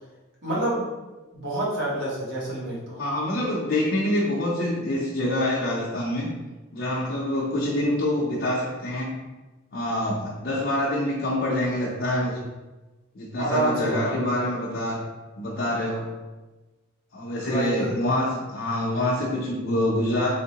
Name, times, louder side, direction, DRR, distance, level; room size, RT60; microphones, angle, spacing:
voice 1, 0.4-0.9 1.3-3.0 7.6-7.7 13.4-14.1 17.4-18.0, right 2 dB, 55° right, -6 dB, 1.3 m, -28 dB
voice 2, 3.0-6.3 6.7-9.2 9.7-12.4 13.2-15.0 15.4-16.1 17.1-20.3, left 1 dB, 50° left, -6 dB, 0.6 m, -26 dB
3.5 x 3.1 x 2.9 m, 1.1 s
head